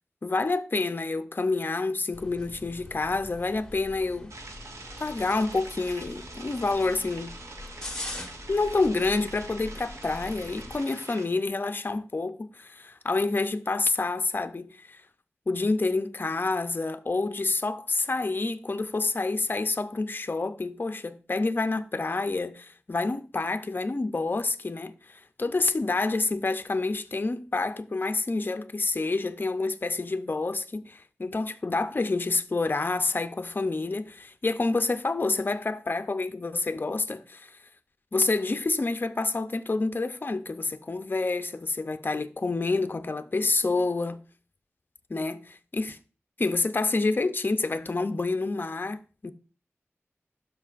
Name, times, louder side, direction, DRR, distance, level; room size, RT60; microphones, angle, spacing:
voice 1, 0.2-4.3 5.0-7.4 8.5-15.0 15.5-37.6 38.1-44.2 45.1-46.0 46.4-49.3, left 3 dB, 45° left, 0.5 m, -28 dB
sound 1, 2.1-10.8, left 1 dB, 15° left, 1.2 m, -43 dB
sound 2, 4.3-11.2, right 2 dB, 85° right, 0.9 m, -45 dB
12.5 x 4.5 x 2.5 m
wide cardioid pair, 60°, 5 cm